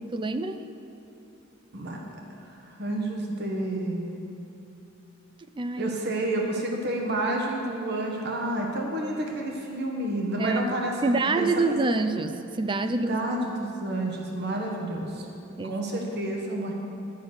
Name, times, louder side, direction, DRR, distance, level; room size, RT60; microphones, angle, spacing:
voice 1, 0.1-0.6 5.6-5.9 10.4-10.6 11.0-13.2 15.6-15.7, right 3 dB, 25° right, 9 dB, 0.4 m, -26 dB
voice 2, 2.4-4.1 5.8-11.8 12.9-15.3 15.6-16.7, right 1 dB, 50° right, 0 dB, 1.4 m, -30 dB
11.5 x 6.6 x 7.9 m, 2.9 s
head